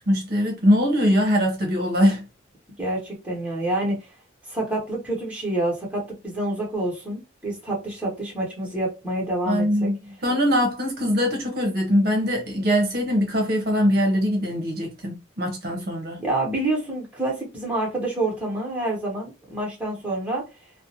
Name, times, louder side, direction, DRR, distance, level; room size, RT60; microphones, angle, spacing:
voice 1, 0.1-2.2 9.5-10.0 10.2-16.2, equal, 50° right, 0.7 m, -22 dB
voice 2, 2.8-4.1 4.5-9.9 16.2-20.4, right 1 dB, 5° right, 1.0 m, -27 dB
2.5 x 2.0 x 2.8 m
head